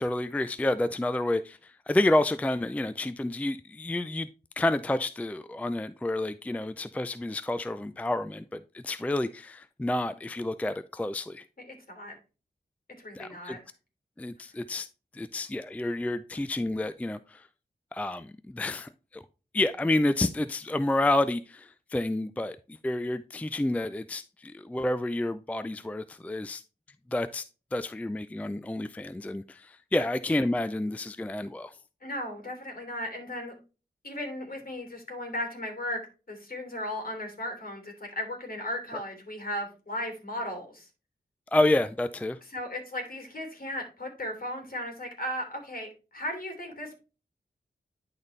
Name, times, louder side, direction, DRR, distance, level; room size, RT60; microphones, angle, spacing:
voice 1, 0.0-4.3 4.6-11.5 13.2-13.6 14.2-14.9 15.1-17.5 17.9-19.2 19.5-22.6 22.8-26.6 27.1-27.4 27.7-31.8 41.5-42.4, left 1 dB, 10° left, 0.4 m, -29 dB
voice 2, 11.7-12.1 13.0-13.6 30.0-30.1 32.0-33.5 34.0-36.0 36.3-40.9 42.5-47.0, left 1 dB, 55° left, 3.1 m, -36 dB
10.5 x 4.1 x 3.2 m
wide cardioid pair, 80°, 17 cm